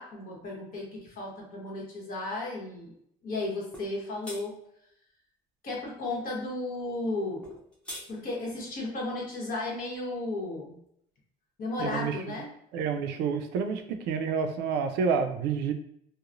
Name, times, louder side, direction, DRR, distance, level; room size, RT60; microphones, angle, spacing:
voice 1, 0.0-2.9 3.2-4.6 5.6-7.5 8.0-10.8 11.6-12.5, left 2 dB, 55° left, -2 dB, 1.1 m, -34 dB
sound 1, 3.7-3.9 4.2-4.4 7.4-8.1, equal, 5° left, 0.7 m, -41 dB
voice 2, 11.8-12.2 12.7-15.7, right 6 dB, 85° right, 7 dB, 0.4 m, -29 dB
2.9 x 2.0 x 2.5 m, 0.71 s
cardioid pair, 110°, 17 cm